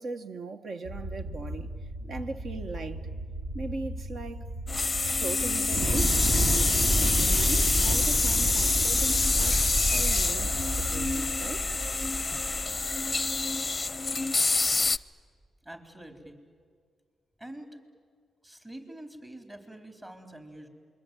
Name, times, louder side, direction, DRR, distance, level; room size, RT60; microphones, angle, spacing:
voice 1, 0.0-1.7 2.0-3.1 3.5-4.5 5.1-6.2 7.0-11.7, right 3 dB, 60° right, 1.4 m, -39 dB
sound 1, 0.8-11.1, right 1 dB, 90° right, 2.7 m, -38 dB
sound 2, 4.7-15.0, left 3 dB, 30° left, 0.6 m, -27 dB
Thunder / Explosion, 5.7-13.9, right 1 dB, 45° right, 1.9 m, -30 dB
voice 2, 15.6-16.4 17.4-17.8 18.4-20.7, right 1 dB, 25° right, 4.1 m, -45 dB
28.0 x 22.5 x 9.2 m
cardioid pair, 65°, 0 cm